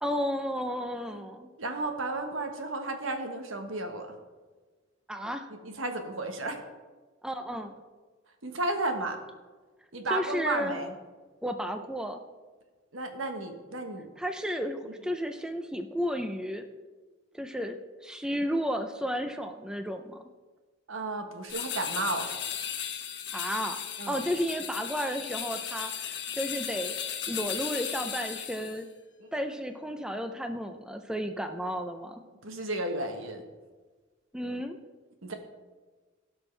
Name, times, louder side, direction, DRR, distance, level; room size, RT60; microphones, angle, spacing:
voice 1, 0.0-1.5 5.1-5.5 7.2-7.8 10.1-10.8 11.4-12.2 14.2-16.7 17.3-20.2 23.3-23.8 24.1-26.9 27.3-28.9 29.3-32.2 34.3-34.8, equal, 5° right, 6 dB, 0.5 m, -33 dB
voice 2, 1.6-4.2 5.6-6.6 8.4-9.2 9.9-10.9 12.9-14.1 20.9-22.3 24.0-24.2 29.2-29.3 32.4-33.4 35.2-35.3, right 2 dB, 80° right, 5 dB, 1.2 m, -33 dB
sound 1, 21.5-28.8, left 8 dB, 60° left, 1.0 m, -36 dB
16.5 x 6.2 x 3.3 m, 1.3 s
head